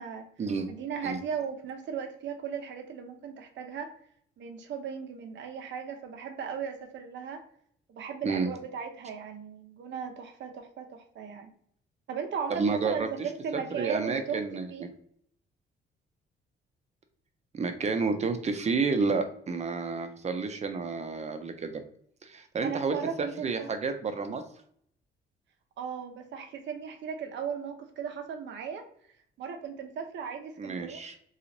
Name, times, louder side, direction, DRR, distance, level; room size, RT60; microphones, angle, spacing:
voice 1, 0.7-3.9 4.4-7.4 7.9-11.5 12.1-14.4 14.7-14.9 22.6-23.7 25.8-28.8 29.4-31.0, right 7 dB, 65° right, 5 dB, 0.7 m, -37 dB
voice 2, 12.5-13.1 13.5-14.9 17.5-21.8 22.2-24.4 30.6-31.1, right 4 dB, 35° right, 7 dB, 0.6 m, -30 dB
3.0 x 2.4 x 3.9 m, 0.64 s
cardioid pair, 90°, 20 cm